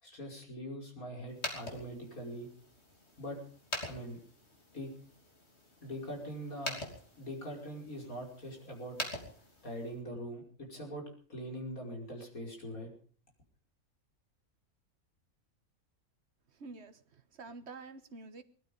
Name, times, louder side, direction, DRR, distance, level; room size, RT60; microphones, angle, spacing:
voice 1, 0.0-2.5 3.2-3.4 3.9-4.2 4.7-4.9 5.8-6.8 7.2-9.0 9.6-11.0 11.3-12.9, equal, 85° left, 1 dB, 5.9 m, -42 dB
sound 1, 1.3-10.0, left 1 dB, 50° left, 3.6 m, -45 dB
voice 2, 16.6-18.4, right 3 dB, 50° right, 10 dB, 1.5 m, -48 dB
20.0 x 12.5 x 5.4 m, 0.43 s
omnidirectional pair, 1.5 m